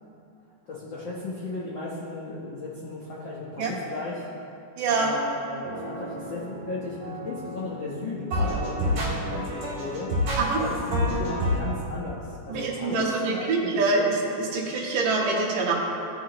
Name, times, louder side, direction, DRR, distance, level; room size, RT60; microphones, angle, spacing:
voice 1, 0.7-4.3 4.9-10.1 10.6-13.8, left 2 dB, 75° left, -7 dB, 1.0 m, -35 dB
voice 2, 4.8-5.2 10.4-10.6 12.5-15.7, right 3 dB, 80° right, -3 dB, 2.8 m, -25 dB
sound 1, 5.6-7.9 8.3-11.6, equal, 60° right, 3.4 m, -29 dB
15.0 x 6.2 x 3.0 m, 2.7 s
omnidirectional pair, 3.8 m